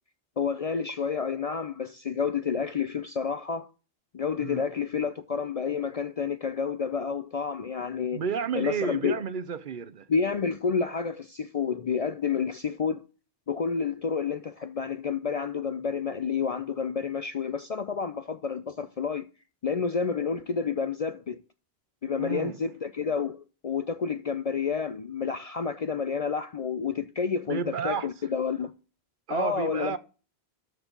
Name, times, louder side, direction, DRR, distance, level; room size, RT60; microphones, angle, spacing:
voice 1, 0.4-3.7 4.1-8.2 8.5-9.2 10.1-13.0 13.5-19.3 19.6-21.4 22.0-27.6 27.8-28.7 29.3-30.0, left 6 dB, 50° left, 0.5 m, -29 dB
voice 2, 8.1-10.1 22.2-22.6 27.5-28.1 29.3-30.0, right 6 dB, 55° right, 0.7 m, -31 dB
13.0 x 4.5 x 5.2 m
omnidirectional pair, 1.1 m